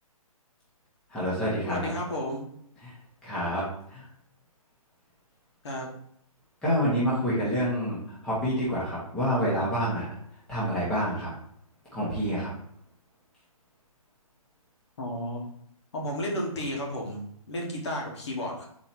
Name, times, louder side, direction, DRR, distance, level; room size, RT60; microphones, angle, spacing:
voice 1, 1.1-1.9 2.8-2.9 3.2-4.0 6.6-8.0 8.2-10.0 10.5-11.3 11.9-12.5, equal, 5° left, -10 dB, 0.9 m, -27 dB
voice 2, 1.7-2.4 5.6-5.9 15.0-15.4 15.9-18.7, left 1 dB, 50° left, -1 dB, 1.2 m, -32 dB
4.1 x 2.8 x 4.4 m, 0.68 s
hypercardioid pair, 165°, 19 cm